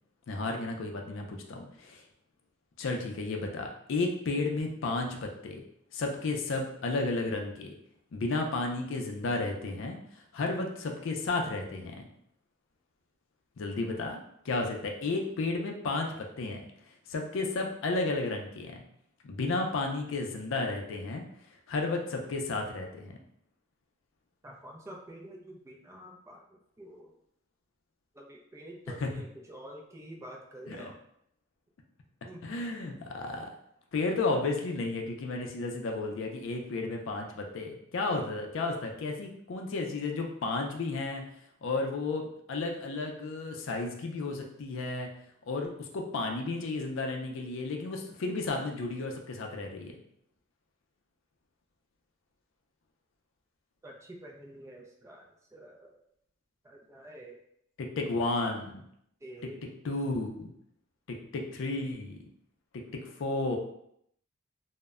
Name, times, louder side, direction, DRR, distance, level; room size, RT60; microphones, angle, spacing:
voice 1, 0.3-2.0 2.8-5.6 5.9-7.8 8.1-12.1 13.6-14.2 14.4-16.6 16.9-18.8 19.2-21.2 21.7-23.2 28.9-29.1 30.7-30.9 32.4-33.5 33.9-41.2 41.6-45.1 45.5-50.0 57.8-58.8 59.4-59.5 59.8-60.5 61.1-62.2 62.7-63.6, left 3 dB, 70° left, 2 dB, 0.4 m, -33 dB
voice 2, 24.4-26.4 26.8-27.1 28.2-30.9 32.2-32.4 53.8-55.2 55.5-55.9 56.6-57.4 59.2-59.6, right 1 dB, 15° right, -1 dB, 0.3 m, -47 dB
2.1 x 2.0 x 3.5 m, 0.73 s
head